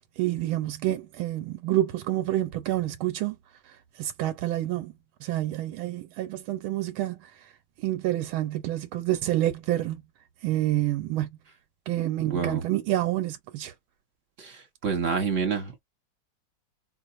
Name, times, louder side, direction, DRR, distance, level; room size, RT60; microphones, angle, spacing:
voice 1, 0.2-3.4 3.7-4.9 5.2-7.5 7.8-10.0 10.4-11.3 11.9-13.7, right 14 dB, 90° right, 1.4 m, -28 dB
voice 2, 12.2-12.6 14.4-15.8, right 6 dB, 45° right, 1.1 m, -28 dB
4.5 x 2.4 x 2.5 m
omnidirectional pair, 2.3 m